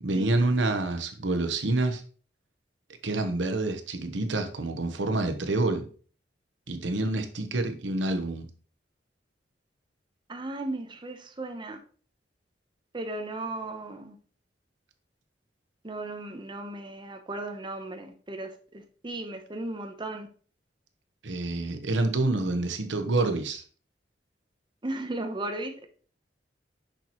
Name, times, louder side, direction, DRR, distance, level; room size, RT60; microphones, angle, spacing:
voice 1, 0.0-2.0 3.0-5.9 6.7-8.5 21.2-23.6, right 2 dB, 85° right, 7 dB, 0.9 m, -27 dB
voice 2, 10.3-11.8 12.9-14.2 15.8-18.5 19.0-20.3 24.8-25.9, right 2 dB, 25° right, 5 dB, 0.8 m, -35 dB
6.7 x 5.8 x 3.0 m, 0.41 s
head